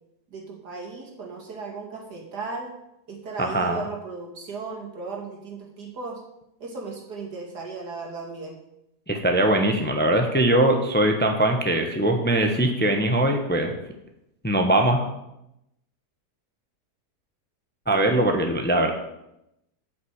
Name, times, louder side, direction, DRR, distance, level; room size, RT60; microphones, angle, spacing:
voice 1, 0.3-2.7 3.1-6.2 6.6-8.6, right 4 dB, 80° right, -1 dB, 2.7 m, -36 dB
voice 2, 3.4-3.8 9.1-13.7 14.4-15.0 17.9-18.9, right 1 dB, 10° left, 4 dB, 0.7 m, -21 dB
8.1 x 6.0 x 8.0 m, 0.86 s
omnidirectional pair, 1.7 m